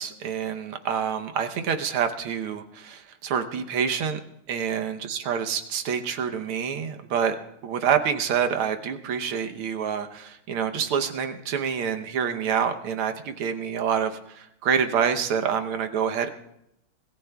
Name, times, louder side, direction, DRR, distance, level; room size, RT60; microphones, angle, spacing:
voice 1, 0.0-4.2 4.5-7.4 7.6-16.3, right 7 dB, 80° right, 6 dB, 1.9 m, -27 dB
26.0 x 18.0 x 2.3 m, 0.79 s
omnidirectional pair, 2.3 m